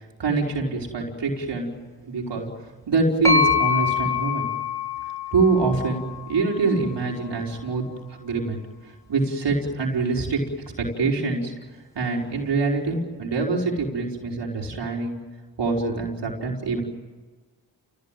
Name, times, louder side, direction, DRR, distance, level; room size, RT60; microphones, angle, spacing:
voice 1, 0.2-1.7 2.1-2.5 2.9-4.5 5.3-7.8 8.1-10.4 10.8-11.5 11.9-15.2 15.6-16.8, right 3 dB, 70° right, -1 dB, 5.1 m, -25 dB
sound 1, 3.2-7.0, left 6 dB, 5° left, 8.0 m, -25 dB
29.5 x 18.5 x 9.2 m, 1.3 s
supercardioid pair, 40°, 43 cm